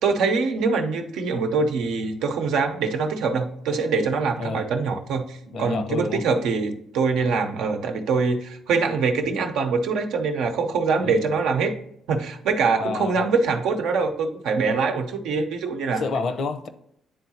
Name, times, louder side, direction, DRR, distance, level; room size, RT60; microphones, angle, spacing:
voice 1, 0.0-11.7 12.1-16.0, right 4 dB, 90° right, 4 dB, 0.8 m, -24 dB
voice 2, 5.5-6.2 11.0-11.3 12.8-13.2 15.9-16.7, left 4 dB, 60° left, 9 dB, 0.7 m, -29 dB
10.0 x 3.7 x 2.8 m, 0.73 s
cardioid pair, 90°, 0 cm